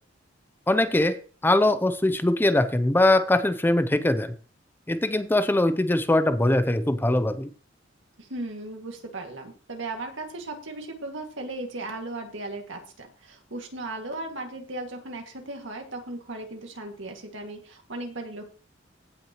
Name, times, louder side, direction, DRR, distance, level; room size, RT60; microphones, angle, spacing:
voice 1, 0.7-4.3 4.9-7.5, left 1 dB, 10° left, 11 dB, 0.5 m, -22 dB
voice 2, 8.2-18.4, right 2 dB, 80° right, 3 dB, 2.1 m, -36 dB
16.0 x 6.0 x 3.0 m, 0.40 s
head